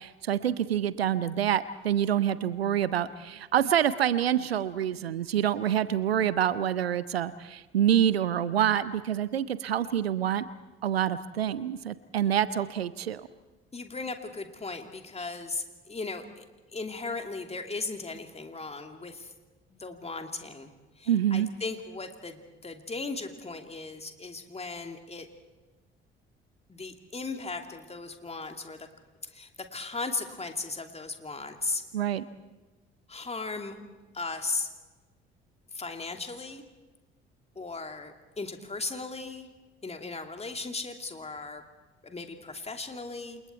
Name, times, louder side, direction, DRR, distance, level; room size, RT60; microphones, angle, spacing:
voice 1, 0.0-10.5 10.8-13.2 21.1-21.5 31.9-32.2, right 10 dB, 85° right, 17 dB, 0.6 m, -27 dB
voice 2, 13.7-19.3 19.7-25.3 26.7-28.9 29.3-31.8 33.1-33.8 34.1-34.7 35.7-36.6 37.6-39.5 39.8-41.6 42.0-43.4, left 3 dB, 20° left, 5 dB, 2.6 m, -37 dB
28.5 x 28.0 x 4.5 m, 1.2 s
figure-of-eight pair, 50°, 30 cm